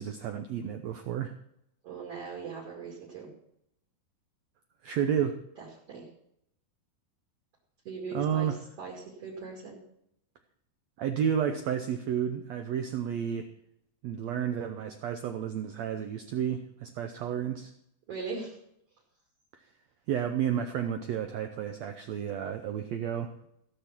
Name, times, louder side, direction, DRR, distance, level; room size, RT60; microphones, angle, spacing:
voice 1, 0.0-1.3 4.8-5.4 8.1-8.5 11.0-13.5 14.0-17.7 20.1-23.3, right 8 dB, 80° right, 7 dB, 1.5 m, -31 dB
voice 2, 1.8-3.3 5.6-6.1 7.8-8.5 8.8-9.8 18.1-18.6, right 4 dB, 45° right, -3 dB, 3.1 m, -40 dB
16.0 x 6.5 x 6.0 m, 0.75 s
omnidirectional pair, 4.1 m